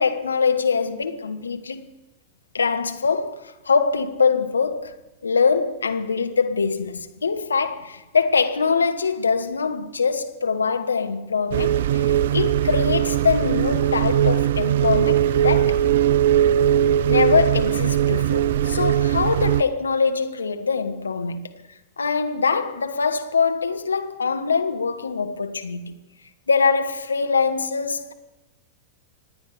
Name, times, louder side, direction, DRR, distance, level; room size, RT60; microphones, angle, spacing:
voice 1, 0.0-1.9 2.5-4.9 5.2-15.8 17.1-21.5 22.0-26.0 26.5-28.1, left 5 dB, 75° left, 1.2 m, -23 dB
sound 1, 11.5-19.6, right 10 dB, 60° right, 0.4 m, -20 dB
26.0 x 9.5 x 5.0 m
figure-of-eight pair, 90°, 0 cm